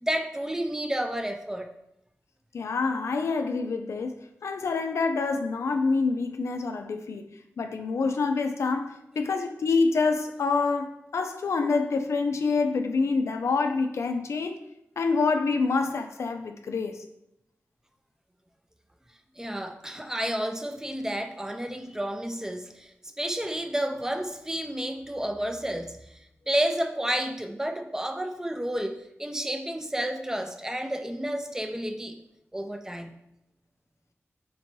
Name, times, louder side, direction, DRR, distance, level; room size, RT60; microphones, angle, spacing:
voice 1, 0.0-1.7 19.4-32.2 32.5-33.1, right 1 dB, 10° right, 6 dB, 0.3 m, -31 dB
voice 2, 2.5-7.3 7.6-14.6 15.0-17.0, left 4 dB, 80° left, 6 dB, 0.3 m, -27 dB
4.3 x 2.6 x 3.0 m, 0.82 s
wide cardioid pair, 100°, 5 cm